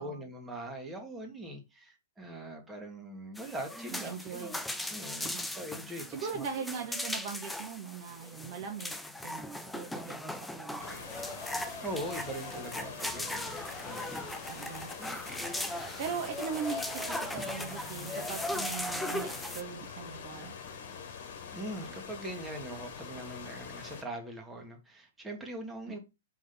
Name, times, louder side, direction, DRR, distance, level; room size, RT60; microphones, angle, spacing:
voice 1, 0.0-4.5 4.9-6.4 11.8-14.2 21.5-26.0, right 1 dB, 10° right, 1.8 m, -42 dB
sound 1, 3.4-19.6, left 1 dB, 5° left, 0.8 m, -38 dB
voice 2, 3.9-4.6 5.2-5.4 6.1-11.3 12.8-12.9 14.5-14.9 16.0-20.5 25.9-26.0, right 6 dB, 45° right, 1.1 m, -40 dB
sound 2, 10.8-24.0, left 6 dB, 60° left, 1.8 m, -45 dB
5.2 x 3.7 x 5.4 m
hypercardioid pair, 115°, 0 cm